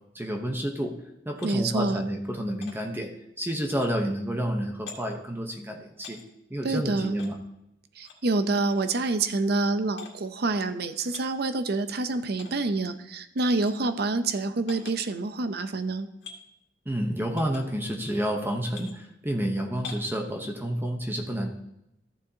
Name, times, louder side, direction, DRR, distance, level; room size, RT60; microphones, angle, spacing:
voice 1, 0.1-0.9 1.3-3.1 3.4-6.2 6.5-7.4 16.9-21.5, equal, 10° right, 3 dB, 0.9 m, -30 dB
sound 1, 1.4-1.6 2.6-2.8 3.6-3.9 4.9-5.0 6.0-6.2 7.2-7.3 8.0-8.2 8.7-9.0 10.0-10.1 11.0-11.3 12.4-12.5 13.5-13.7 14.7-15.0 16.2-16.4 17.4-17.6 18.7-18.9 19.8-20.1, left 5 dB, 65° left, 1.9 m, -44 dB
voice 2, 1.4-2.0 6.6-7.2 8.0-16.1, right 3 dB, 60° right, 10 dB, 0.7 m, -27 dB
14.0 x 7.0 x 2.8 m, 0.83 s
head